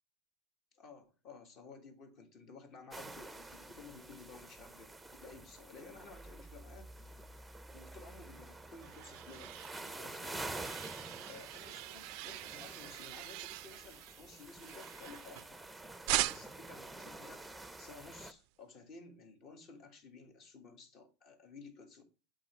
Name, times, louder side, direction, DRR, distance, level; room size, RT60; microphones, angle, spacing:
voice 1, 0.7-7.1 7.7-10.9 11.3-15.6 16.3-17.5 17.8-22.0, left 4 dB, 45° left, 1.6 m, -54 dB
sound 1, 2.9-18.3, right 2 dB, 5° right, 0.6 m, -48 dB
sound 2, 8.3-15.7 16.1-16.7, right 19 dB, 60° right, 0.3 m, -41 dB
7.7 x 3.9 x 4.4 m
supercardioid pair, 110°, 0 cm